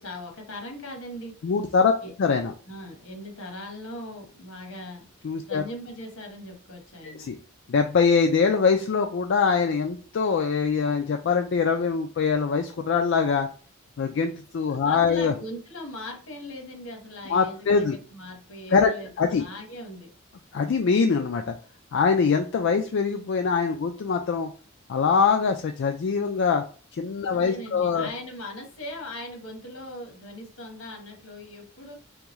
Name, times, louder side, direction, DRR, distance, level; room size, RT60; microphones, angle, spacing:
voice 1, 0.0-1.3 2.0-2.1 2.7-5.1 5.5-7.3 14.8-20.1 27.3-32.0, left 1 dB, 80° left, 3 dB, 1.2 m, -39 dB
voice 2, 1.4-1.9 2.2-2.5 5.2-5.6 7.0-7.4 7.7-13.5 14.0-15.3 17.3-18.0 18.7-19.4 20.5-21.5 21.9-24.5 24.9-26.6 26.9-28.1, left 5 dB, 60° left, 5 dB, 0.4 m, -23 dB
3.6 x 3.5 x 3.0 m, 0.40 s
head